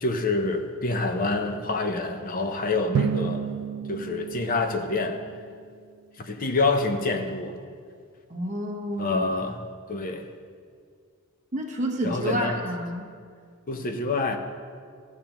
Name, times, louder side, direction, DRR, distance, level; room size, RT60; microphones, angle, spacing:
voice 1, 0.0-3.5 3.9-5.2 6.2-7.6 9.0-9.6 9.9-10.3 12.0-12.6 13.7-14.4, left 3 dB, 40° left, 6 dB, 0.7 m, -27 dB
Drum, 2.9-5.7, right 7 dB, 75° right, 0.3 m, -31 dB
voice 2, 8.3-9.2 11.5-13.1, equal, 35° right, 0 dB, 1.2 m, -29 dB
14.5 x 6.7 x 3.0 m, 2.1 s
head